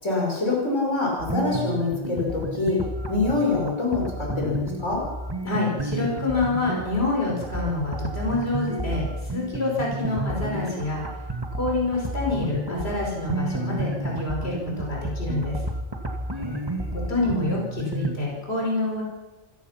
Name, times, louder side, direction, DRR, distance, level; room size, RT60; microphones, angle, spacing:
voice 1, 0.0-2.8 3.1-5.0 16.3-17.2, left 3 dB, 85° left, -2 dB, 5.7 m, -26 dB
sound 1, 1.2-18.2, right 1 dB, 20° right, 2.0 m, -31 dB
voice 2, 5.4-11.2 11.5-15.6 16.9-19.0, left 2 dB, 60° left, -2 dB, 5.5 m, -27 dB
27.0 x 17.0 x 5.9 m, 1.2 s
omnidirectional pair, 1.2 m